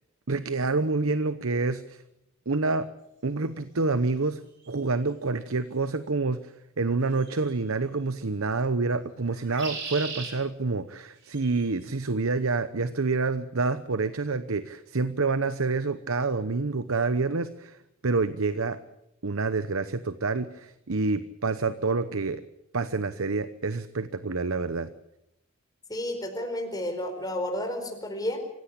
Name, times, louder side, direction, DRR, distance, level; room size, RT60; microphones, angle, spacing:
voice 1, 0.3-2.0 2.5-2.9 3.2-17.8 18.0-18.8 19.2-22.4 22.7-24.9, right 3 dB, 80° right, 12 dB, 0.9 m, -28 dB
sound 1, 4.6-4.7 7.2-7.6 9.3-10.3 11.3-11.7, right 5 dB, 55° right, 6.0 m, -37 dB
voice 2, 25.9-28.4, left 1 dB, 20° left, 5 dB, 4.5 m, -31 dB
25.5 x 16.0 x 8.6 m, 0.85 s
head